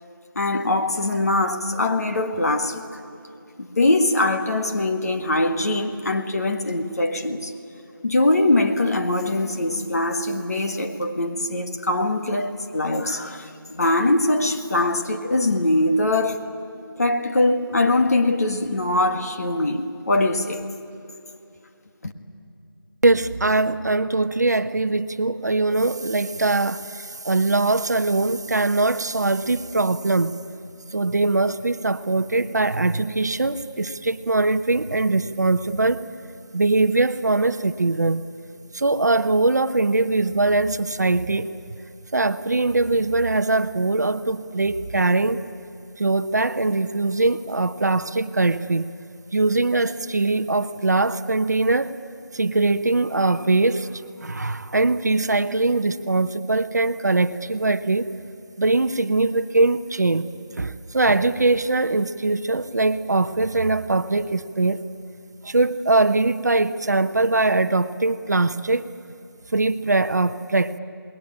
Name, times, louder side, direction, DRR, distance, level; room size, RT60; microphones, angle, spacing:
voice 1, 0.3-2.9 3.6-7.5 8.0-16.4 17.0-20.6 22.0-22.1, left 2 dB, 45° left, 1.6 m, -22 dB
voice 2, 23.0-30.3 30.9-36.0 36.5-38.2 38.7-41.5 42.1-45.4 46.0-48.9 49.3-51.9 52.3-58.1 58.6-60.3 60.6-64.8 65.4-68.9 69.5-70.8, right 2 dB, 50° right, 0.8 m, -21 dB
27.5 x 20.5 x 8.9 m
figure-of-eight pair, 170°, 12 cm